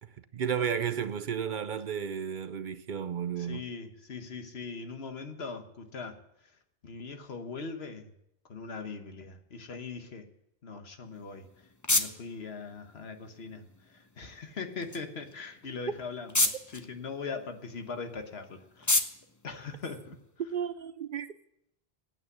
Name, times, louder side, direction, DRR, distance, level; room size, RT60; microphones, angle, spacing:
voice 1, 0.0-3.6 20.5-21.3, right 8 dB, 55° right, 0.7 m, -33 dB
voice 2, 3.4-6.2 6.4-8.1 8.5-10.3 10.6-19.1 19.4-20.2, left 4 dB, 80° left, 1.5 m, -41 dB
sound 1, 11.1-20.5, left 2 dB, 20° left, 0.7 m, -35 dB
9.0 x 8.5 x 9.4 m
omnidirectional pair, 1.0 m